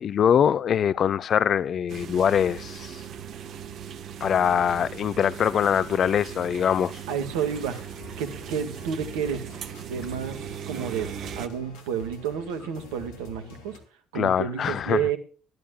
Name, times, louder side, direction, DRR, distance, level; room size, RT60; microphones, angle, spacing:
voice 1, 0.0-3.0 4.2-7.0 14.1-15.0, left 8 dB, 45° left, 0.7 m, -23 dB
sound 1, 1.9-11.5, right 8 dB, 55° right, 1.3 m, -39 dB
voice 2, 7.1-7.8 8.2-9.5 9.8-13.8 14.1-15.2, right 7 dB, 70° right, 2.1 m, -30 dB
sound 2, 7.4-13.8, left 3 dB, 65° left, 3.1 m, -47 dB
21.0 x 12.5 x 2.4 m
figure-of-eight pair, 55°, 0 cm